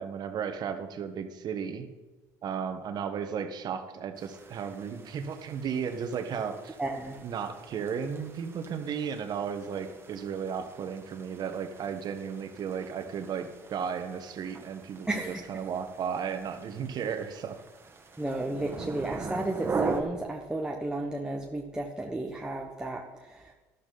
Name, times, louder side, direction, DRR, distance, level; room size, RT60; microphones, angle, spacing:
voice 1, 0.0-1.9 2.4-6.8 7.2-17.6, right 7 dB, 55° right, 8 dB, 1.4 m, -34 dB
sound 1, 4.2-20.0, right 4 dB, 30° right, 1.9 m, -41 dB
voice 2, 6.8-7.2 15.1-15.4 18.2-23.5, right 2 dB, 10° right, -1 dB, 1.3 m, -33 dB
12.5 x 12.0 x 4.2 m, 1.2 s
supercardioid pair, 75°, 9 cm